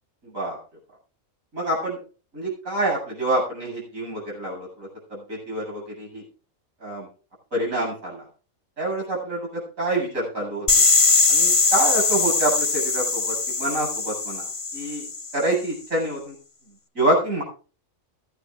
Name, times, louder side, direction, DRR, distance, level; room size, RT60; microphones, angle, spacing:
voice 1, 0.2-0.6 1.5-2.0 2.3-6.2 6.8-7.1 7.5-8.3 8.8-10.7 11.3-14.5 14.7-15.0 15.3-16.3 16.6-17.4, right 1 dB, 80° right, -2 dB, 8.4 m, -27 dB
sound 1, 10.7-15.5, left 4 dB, 25° left, 1.0 m, -21 dB
22.0 x 9.9 x 2.5 m, 0.37 s
omnidirectional pair, 1.4 m